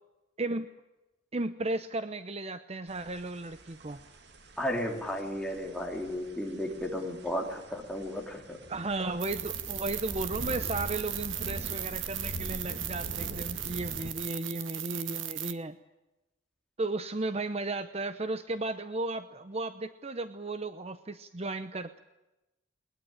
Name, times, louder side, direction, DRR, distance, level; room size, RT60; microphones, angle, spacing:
voice 1, 1.3-4.0 8.7-15.8 16.8-22.0, right 2 dB, 30° right, 11 dB, 0.8 m, -34 dB
sound 1, 2.9-14.1, equal, 60° right, 2.1 m, -44 dB
voice 2, 4.6-8.6, equal, 5° left, 1 dB, 3.5 m, -34 dB
sound 2, 9.2-15.5, right 12 dB, 80° right, 1.3 m, -37 dB
21.5 x 20.5 x 9.0 m, 0.99 s
head